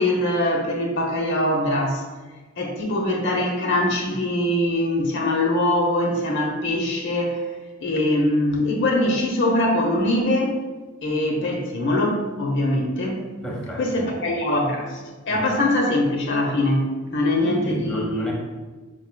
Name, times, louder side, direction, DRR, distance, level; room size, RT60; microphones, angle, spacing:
voice 1, 0.0-2.0 2.6-7.4 7.8-10.6 11.0-13.3 13.8-15.0 15.2-18.3, left 1 dB, 60° left, 0 dB, 0.8 m, -22 dB
voice 2, 13.4-14.1 15.3-15.4 17.4-18.3, right 1 dB, 5° left, -3 dB, 0.8 m, -30 dB
5.2 x 4.6 x 2.2 m, 1.3 s
head